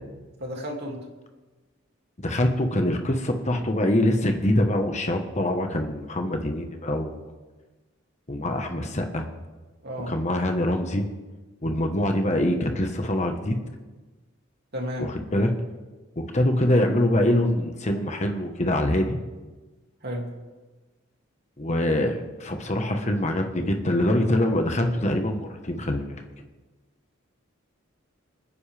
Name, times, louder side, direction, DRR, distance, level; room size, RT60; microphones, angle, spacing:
voice 1, 0.4-1.0 9.8-10.1 14.7-15.1 20.0-20.3, equal, 55° right, 0 dB, 2.6 m, -32 dB
voice 2, 2.2-7.2 8.3-9.3 10.1-11.0 11.6-13.6 15.0-15.5 16.2-19.2 21.6-26.2, left 1 dB, 35° left, 4 dB, 1.3 m, -24 dB
27.0 x 9.9 x 3.5 m, 1.2 s
head